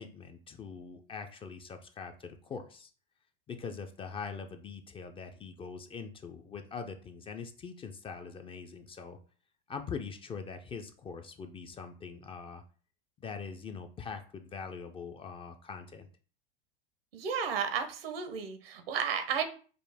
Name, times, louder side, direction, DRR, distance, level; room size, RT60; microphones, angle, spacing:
voice 1, 0.0-2.9 3.5-9.2 9.7-12.6 13.2-16.1, left 5 dB, 20° left, 7 dB, 0.3 m, -43 dB
voice 2, 17.1-19.4, right 7 dB, 80° right, 7 dB, 0.9 m, -33 dB
5.1 x 2.0 x 3.4 m, 0.40 s
hypercardioid pair, 105°, 29 cm